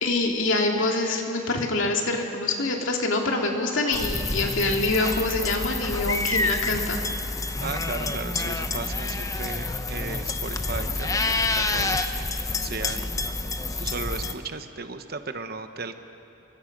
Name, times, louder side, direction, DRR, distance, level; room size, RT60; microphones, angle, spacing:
voice 1, 0.0-7.1, left 2 dB, 70° left, 1 dB, 2.5 m, -25 dB
sound 1, 3.9-14.3, left 3 dB, 15° left, 0.8 m, -28 dB
voice 2, 7.6-12.3 12.6-13.1 13.8-16.0, right 4 dB, 50° right, 8 dB, 1.0 m, -35 dB
28.0 x 23.5 x 5.3 m, 2.9 s
head